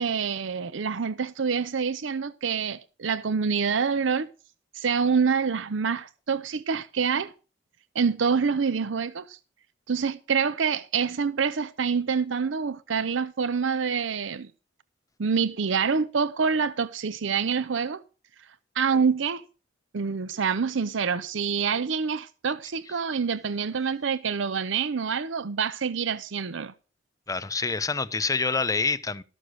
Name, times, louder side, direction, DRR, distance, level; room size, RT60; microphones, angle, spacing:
voice 1, 0.0-4.3 4.7-7.3 7.9-9.4 9.9-14.5 15.2-18.0 18.8-19.4 19.9-26.7, right 6 dB, 70° right, 0.6 m, -26 dB
voice 2, 27.3-29.2, left 4 dB, 15° left, 0.5 m, -26 dB
13.5 x 6.4 x 6.2 m
head